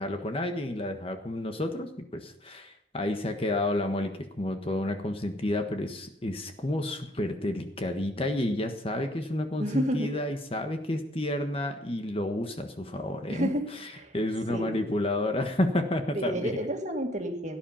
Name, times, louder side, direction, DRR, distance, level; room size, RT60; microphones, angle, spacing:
voice 1, 0.0-4.1 4.4-16.6, left 1 dB, 30° left, 6 dB, 1.4 m, -30 dB
voice 2, 9.6-10.2 13.3-13.6 13.9-14.1 14.5-14.9 16.1-17.6, equal, 40° right, 4 dB, 2.2 m, -30 dB
17.5 x 10.5 x 5.7 m, 0.71 s
head